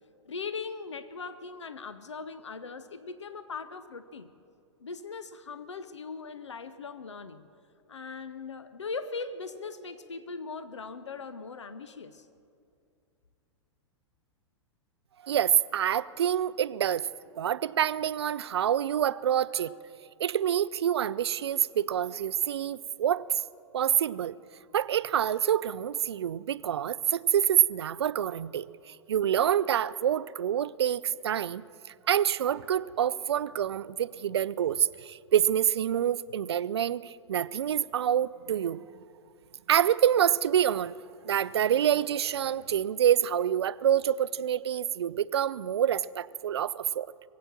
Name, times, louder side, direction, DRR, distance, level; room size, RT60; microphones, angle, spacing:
voice 1, 0.2-4.3 4.8-7.5 7.9-12.3, left 4 dB, 75° left, 12 dB, 0.7 m, -39 dB
voice 2, 15.2-17.1 17.4-19.7 20.2-23.4 23.7-24.3 24.7-31.6 32.1-38.8 39.7-40.9 41.2-47.1, right 10 dB, 60° right, 18 dB, 0.4 m, -27 dB
22.0 x 8.6 x 7.5 m, 2.4 s
figure-of-eight pair, 100°, 15 cm